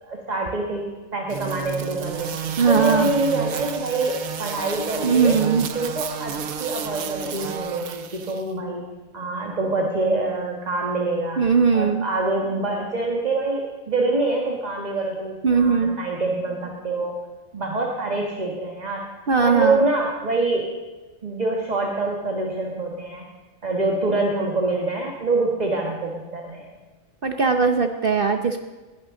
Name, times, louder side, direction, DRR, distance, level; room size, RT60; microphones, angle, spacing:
voice 1, 0.0-2.3 2.7-5.4 5.7-8.8 9.1-11.4 11.7-17.2 17.5-19.0 19.4-20.7 21.2-23.2 23.6-26.7, right 2 dB, 30° right, 0 dB, 1.7 m, -25 dB
sound 1, 1.3-8.4, right 7 dB, 85° right, 1.3 m, -31 dB
voice 2, 2.6-3.1 5.0-5.7 11.4-12.1 15.4-16.0 19.3-19.9 27.2-28.6, right 5 dB, 45° right, 6 dB, 0.9 m, -19 dB
20.0 x 16.5 x 3.8 m, 1.2 s
omnidirectional pair, 1.4 m